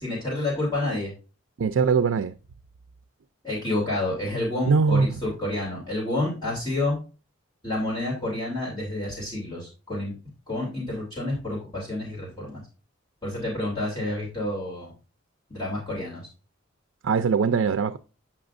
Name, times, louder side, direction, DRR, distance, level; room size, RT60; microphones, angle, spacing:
voice 1, 0.0-1.1 3.4-7.0 7.6-10.1 10.5-12.6 13.2-14.9 15.5-16.2, left 2 dB, 20° left, 2.8 m, -29 dB
voice 2, 1.6-2.3 4.6-5.1 17.0-18.0, right 5 dB, 80° right, 0.4 m, -21 dB
8.7 x 5.9 x 2.5 m
head